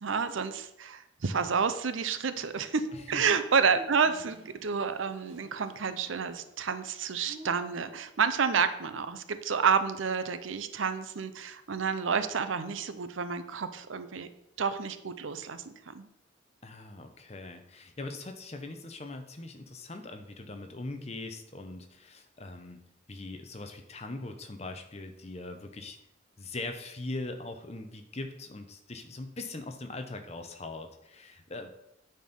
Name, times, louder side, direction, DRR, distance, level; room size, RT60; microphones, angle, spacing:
voice 1, 0.0-14.3 14.6-16.1, right 6 dB, 80° right, 11 dB, 0.6 m, -30 dB
sound 1, 2.3-8.0, right 1 dB, 30° right, 1.7 m, -52 dB
voice 2, 2.9-3.2 16.6-22.8 23.1-26.0 26.4-31.7, left 2 dB, 30° left, 6 dB, 0.8 m, -41 dB
9.1 x 4.3 x 5.3 m, 0.82 s
head